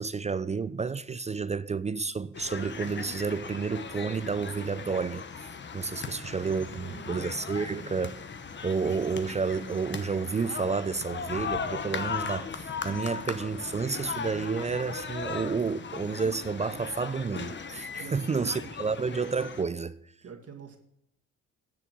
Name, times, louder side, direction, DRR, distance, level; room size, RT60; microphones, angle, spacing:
voice 1, 0.0-5.2 5.7-8.2 8.6-20.0, right 5 dB, 25° right, 0.4 m, -30 dB
sound 1, 2.3-19.6, left 5 dB, 40° left, 1.0 m, -38 dB
voice 2, 6.0-7.9 18.0-19.0 20.2-20.8, right 7 dB, 50° right, 2.2 m, -47 dB
10.5 x 7.1 x 6.0 m
cardioid pair, 90°, 30 cm